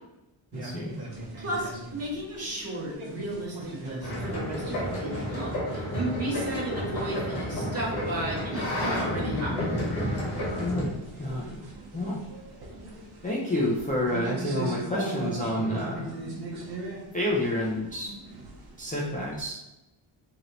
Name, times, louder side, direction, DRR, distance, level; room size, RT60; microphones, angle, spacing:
voice 1, 0.5-1.0 10.6-11.6 11.9-12.2 13.2-16.1 17.1-18.1 18.8-19.6, left 1 dB, 20° left, -5 dB, 0.4 m, -29 dB
sound 1, 0.5-19.4, right 2 dB, 50° right, 0.9 m, -41 dB
voice 2, 1.4-9.8, right 1 dB, 30° right, -5 dB, 1.3 m, -34 dB
sound 2, 4.0-10.8, left 1 dB, 55° left, 1.3 m, -31 dB
3.1 x 2.9 x 3.9 m, 0.98 s
wide cardioid pair, 155°, 47 cm